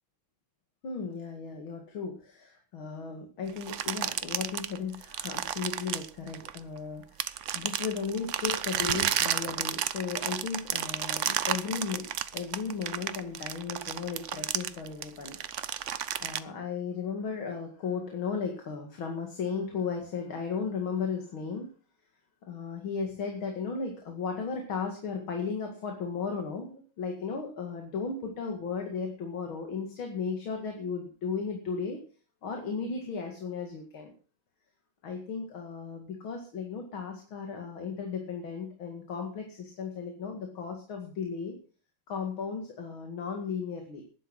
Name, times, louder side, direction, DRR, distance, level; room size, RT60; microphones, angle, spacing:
voice 1, 0.8-15.4 15.8-15.9 16.2-21.7 22.5-32.0 32.4-34.1 35.0-41.5 42.1-44.0, left 5 dB, 75° left, 2 dB, 2.9 m, -35 dB
sound 1, 3.6-6.8 7.2-16.4, right 10 dB, 80° right, 0.6 m, -32 dB
12.0 x 11.0 x 6.3 m, 0.40 s
omnidirectional pair, 2.2 m